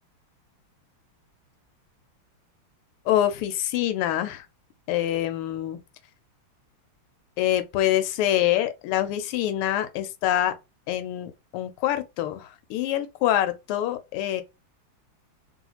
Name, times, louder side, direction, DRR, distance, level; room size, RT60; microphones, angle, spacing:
voice 1, 3.1-4.4 4.9-5.8 7.4-10.5 10.9-14.4, left 12 dB, 85° left, 1.5 m, -25 dB
3.2 x 3.0 x 2.8 m
omnidirectional pair, 2.4 m